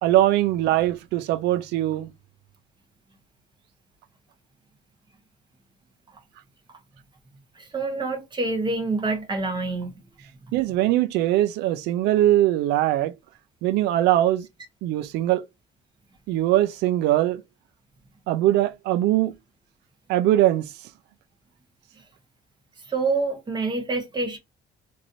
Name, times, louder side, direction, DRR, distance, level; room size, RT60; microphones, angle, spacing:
voice 1, 0.0-2.1 10.5-13.1 13.6-14.5 14.8-15.4 16.3-17.4 18.3-19.3 20.1-20.7, right 14 dB, 85° right, 0.4 m, -21 dB
voice 2, 7.5-10.0 22.9-24.4, right 3 dB, 25° right, 1.0 m, -27 dB
3.0 x 2.6 x 2.6 m
cardioid pair, 110°, 17 cm